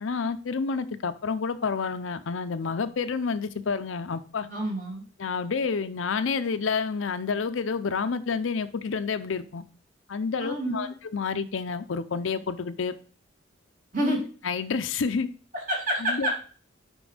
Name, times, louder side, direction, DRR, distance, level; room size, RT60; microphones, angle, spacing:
voice 1, 0.0-4.5 5.2-9.6 10.1-12.9 14.4-15.3 16.0-16.3, left 5 dB, 85° left, 0.5 m, -29 dB
voice 2, 4.4-5.0 10.4-10.9 13.9-14.2 15.5-16.3, right 1 dB, 40° right, 2.4 m, -28 dB
5.3 x 5.2 x 5.0 m
head